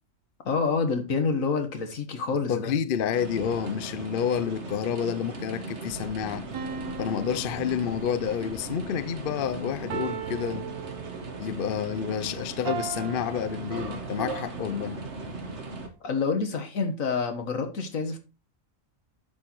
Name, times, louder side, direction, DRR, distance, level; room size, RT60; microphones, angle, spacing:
voice 1, 0.5-2.7 16.0-18.2, left 4 dB, 75° left, 1.8 m, -27 dB
voice 2, 2.5-6.5 7.0-10.6 11.4-14.9, left 8 dB, 55° left, 0.6 m, -29 dB
sound 1, 3.1-15.9, right 3 dB, 55° right, 1.8 m, -38 dB
sound 2, 6.5-8.4 9.9-11.5 12.7-14.4, right 7 dB, 90° right, 1.3 m, -38 dB
10.5 x 6.4 x 3.1 m
omnidirectional pair, 1.4 m